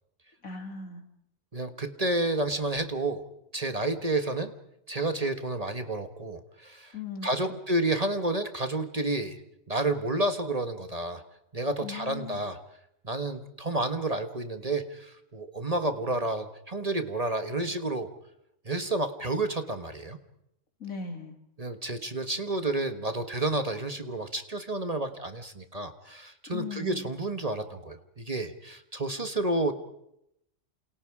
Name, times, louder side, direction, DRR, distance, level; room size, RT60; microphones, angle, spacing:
voice 1, 0.4-1.0 6.9-7.6 11.8-12.4 20.8-21.4 26.5-27.1, left 5 dB, 85° left, 4 dB, 3.5 m, -38 dB
voice 2, 1.5-4.5 4.9-6.9 7.2-9.4 9.7-11.2 11.5-12.6 13.0-18.1 18.6-20.2 21.6-29.7, right 2 dB, 30° right, 8 dB, 1.4 m, -30 dB
29.5 x 27.5 x 4.9 m, 0.78 s
omnidirectional pair, 1.4 m